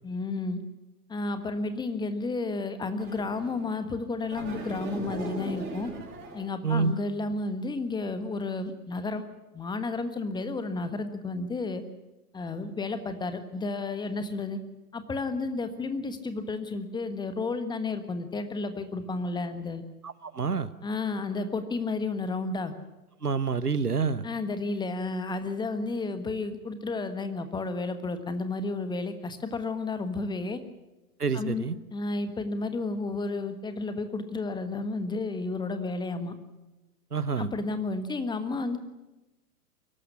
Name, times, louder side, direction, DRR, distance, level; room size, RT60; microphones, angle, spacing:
voice 1, 0.0-0.6 1.1-5.9 6.3-9.2 9.5-11.8 12.3-14.6 14.9-19.8 20.8-22.7 24.2-30.6 31.3-31.7 31.9-36.3 37.4-38.8, left 3 dB, 10° left, 10 dB, 1.4 m, -32 dB
sound 1, 3.0-3.7 4.3-6.5, right 2 dB, 25° right, 6.8 m, -38 dB
voice 2, 20.0-20.7 23.2-24.3 31.2-31.8 37.1-37.5, right 5 dB, 85° right, 16 dB, 1.1 m, -27 dB
23.0 x 12.5 x 9.7 m, 1.0 s
figure-of-eight pair, 105°, 45 cm